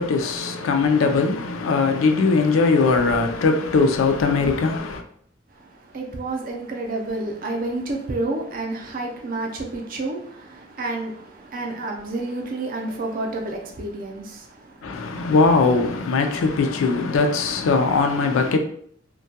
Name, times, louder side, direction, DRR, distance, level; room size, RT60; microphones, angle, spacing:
voice 1, 0.0-5.0 14.8-18.6, left 4 dB, 85° left, 0.4 m, -20 dB
voice 2, 5.5-15.3, right 2 dB, 45° right, 0.4 m, -30 dB
2.2 x 2.2 x 2.7 m
head